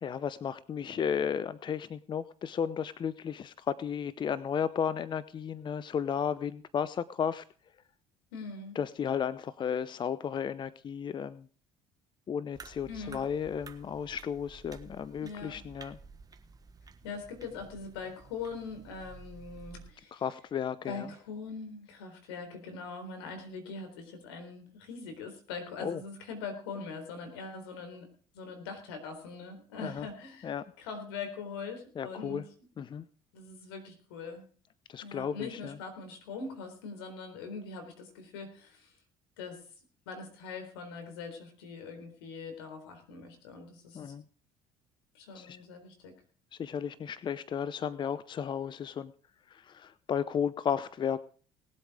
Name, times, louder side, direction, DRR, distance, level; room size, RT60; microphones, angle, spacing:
voice 1, 0.0-7.4 8.7-11.5 12.3-16.0 20.1-21.1 25.8-26.0 29.8-30.1 30.4-30.7 32.0-32.4 32.8-33.0 34.9-35.8 43.9-44.2 45.3-45.6 46.6-49.1 49.5-51.2, left 7 dB, 40° left, 16 dB, 0.7 m, -34 dB
voice 2, 8.3-8.8 12.9-13.2 15.2-15.6 17.0-20.2 20.8-28.1 28.3-32.4 33.3-34.4 35.0-38.9 39.4-39.6 40.1-44.1 45.1-46.2, left 4 dB, 90° left, 6 dB, 4.0 m, -42 dB
sound 1, 12.5-19.9, right 4 dB, 30° right, 1.4 m, -52 dB
19.0 x 8.1 x 5.0 m, 0.42 s
supercardioid pair, 80°, 12 cm